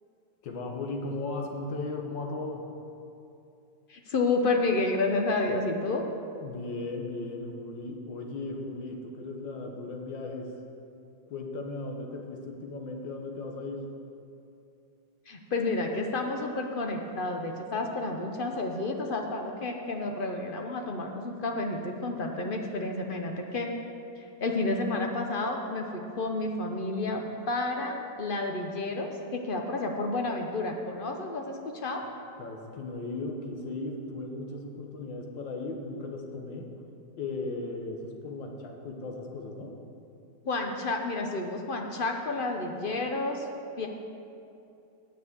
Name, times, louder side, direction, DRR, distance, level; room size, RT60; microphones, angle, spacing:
voice 1, 0.4-2.7 6.4-10.6 11.3-13.9 32.4-36.7 37.2-39.8, left 2 dB, 90° left, 2 dB, 1.9 m, -36 dB
voice 2, 3.9-6.0 15.3-23.7 24.2-32.0 40.4-43.5 43.8-43.9, left 2 dB, 55° left, 3 dB, 0.6 m, -30 dB
9.5 x 6.2 x 7.9 m, 2.7 s
omnidirectional pair, 2.0 m